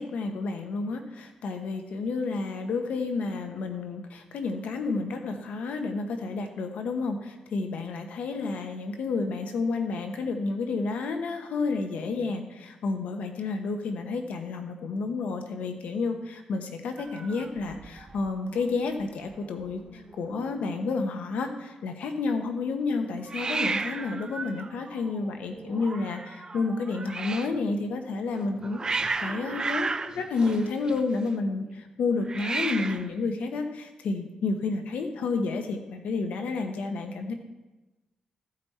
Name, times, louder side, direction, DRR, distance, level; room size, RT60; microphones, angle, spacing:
voice 1, 0.0-37.3, left 4 dB, 80° left, 6 dB, 1.1 m, -30 dB
Hiss, 17.0-18.3 18.6-19.0 19.3-19.4 19.6-20.3 23.3-27.6 28.3-31.3 32.2-33.2, right 4 dB, 30° right, 0.5 m, -34 dB
14.5 x 5.3 x 4.2 m, 1.1 s
cardioid pair, 85°, 2 cm